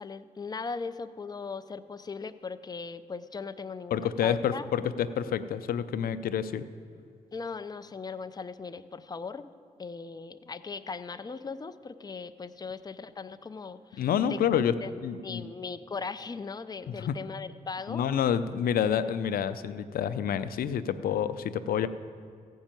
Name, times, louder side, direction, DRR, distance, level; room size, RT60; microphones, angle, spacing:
voice 1, 0.0-4.7 7.3-9.5 9.8-14.4 14.8-14.9 15.2-18.0, left 4 dB, 25° left, 11 dB, 0.5 m, -39 dB
voice 2, 3.9-6.6 14.0-14.7 15.0-15.4 16.9-17.2 17.9-21.9, left 8 dB, 85° left, 13 dB, 0.5 m, -28 dB
14.5 x 5.5 x 8.9 m, 2.3 s
cardioid pair, 65°, 15 cm